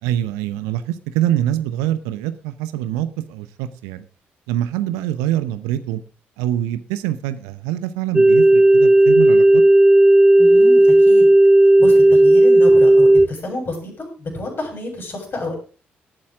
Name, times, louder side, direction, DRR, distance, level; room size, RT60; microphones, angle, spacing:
voice 1, 0.0-4.0 4.5-6.0 6.4-9.6, right 12 dB, 70° right, 13 dB, 0.8 m, -24 dB
sound 1, 8.1-13.3, right 1 dB, 15° right, 0.5 m, -11 dB
voice 2, 10.4-11.3 11.8-15.5, left 1 dB, 40° left, 0 dB, 7.4 m, -30 dB
18.5 x 8.6 x 3.7 m, 0.37 s
figure-of-eight pair, 40°, 6 cm